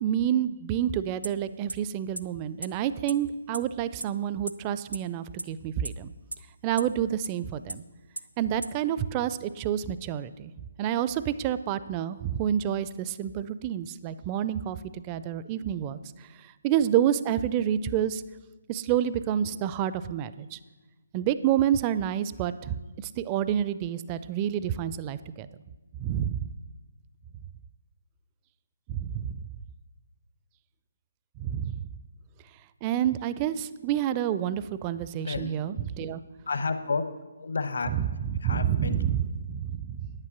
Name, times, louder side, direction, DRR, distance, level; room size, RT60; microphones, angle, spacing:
voice 1, 0.0-6.1 6.6-7.8 8.4-10.5 10.8-16.0 16.6-18.2 18.7-20.6 21.1-25.5 26.0-26.5 28.9-29.4 31.4-31.9 32.8-36.2 37.9-40.1, right 10 dB, 20° right, 15 dB, 0.4 m, -28 dB
sound 1, 1.2-1.3 1.7-1.8 2.2-2.3 2.6-2.7 3.1-3.2 3.5-3.6 4.0-4.1 4.5-4.6 4.9-5.0 5.4-5.5 5.8-5.9 6.3-6.4 6.8-6.9 7.2-7.3 7.7-7.8 8.2-8.3 8.6-8.7, right 2 dB, 80° right, 0.6 m, -33 dB
voice 2, 35.2-35.5 36.5-37.1 37.4-37.9 38.4-39.0, left 4 dB, 55° left, 10 dB, 0.9 m, -30 dB
9.8 x 9.4 x 6.0 m, 1.2 s
figure-of-eight pair, 140°, 0 cm